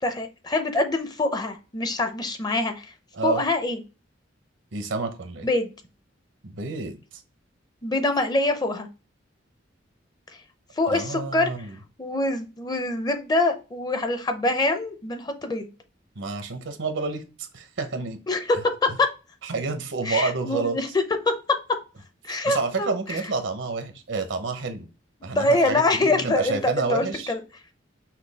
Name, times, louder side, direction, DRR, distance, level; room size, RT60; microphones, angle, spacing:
voice 1, 0.0-2.9 3.2-3.8 5.4-5.7 7.8-8.9 10.8-11.5 12.0-15.7 18.3-19.1 20.0-20.9 21.2-21.3 22.2-23.2 25.2-27.4, left 2 dB, 20° left, 7 dB, 0.6 m, -25 dB
voice 2, 4.7-5.5 6.4-7.0 10.9-11.8 16.2-18.2 19.4-20.8 22.4-24.9 25.2-27.3, right 4 dB, 80° right, 7 dB, 0.8 m, -29 dB
5.8 x 2.3 x 3.4 m, 0.31 s
head